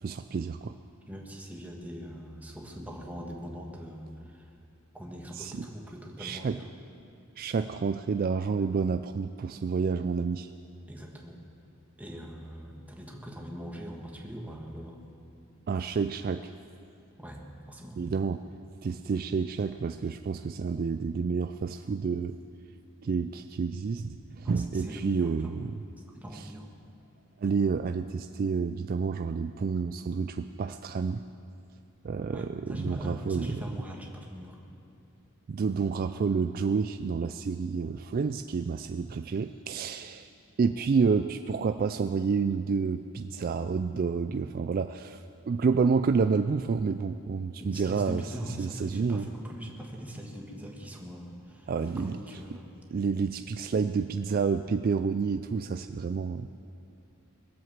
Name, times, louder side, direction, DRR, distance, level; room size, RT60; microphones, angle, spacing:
voice 1, 0.0-0.8 5.3-5.7 6.2-6.6 7.4-10.5 15.7-16.5 18.0-18.4 18.8-22.4 23.0-25.7 26.3-26.5 27.4-31.2 32.0-33.6 35.5-40.3 40.6-48.2 48.6-49.3 51.7-52.2 52.9-56.5, right 5 dB, 40° right, 8 dB, 0.3 m, -29 dB
voice 2, 1.1-4.5 4.9-6.7 10.9-11.4 12.0-15.0 17.2-18.0 24.6-25.6 26.1-26.7 32.3-34.6 47.6-52.8, equal, 5° right, 0 dB, 1.5 m, -41 dB
21.0 x 7.9 x 7.4 m, 2.6 s
head